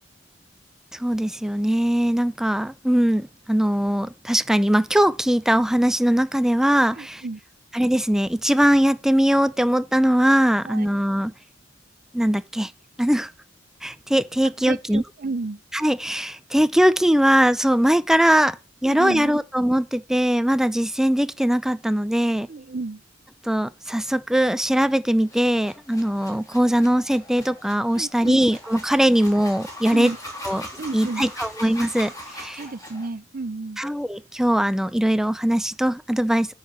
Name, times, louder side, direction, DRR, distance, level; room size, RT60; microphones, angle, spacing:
voice 1, 0.9-7.2 7.7-11.3 12.1-12.7 13.0-13.3 13.8-15.0 15.7-18.6 18.8-22.5 23.4-30.1 30.4-30.6 30.9-32.6 33.8-36.5, equal, 5° right, 0.4 m, -21 dB
voice 2, 6.9-7.4 10.6-10.9 14.7-15.6 18.8-19.3 22.5-23.0 27.9-28.5 29.9-30.2 30.8-31.3 32.6-33.8, right 3 dB, 50° right, 0.6 m, -32 dB
sound 1, 25.2-33.1, left 1 dB, 20° left, 3.0 m, -40 dB
9.5 x 5.7 x 5.8 m
head